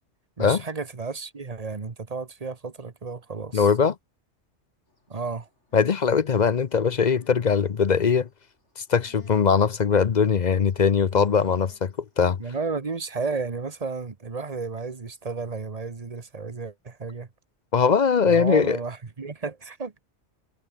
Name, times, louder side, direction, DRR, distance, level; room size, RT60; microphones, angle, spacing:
voice 1, 0.4-3.7 5.1-5.5 12.4-17.3 18.2-20.0, right 4 dB, 35° right, 1.2 m, -32 dB
voice 2, 3.5-3.9 5.7-8.3 8.8-12.4 17.7-18.8, left 6 dB, 45° left, 0.8 m, -21 dB
sound 1, 4.9-12.5, left 1 dB, 80° left, 7.3 m, -62 dB
omnidirectional pair, 1.2 m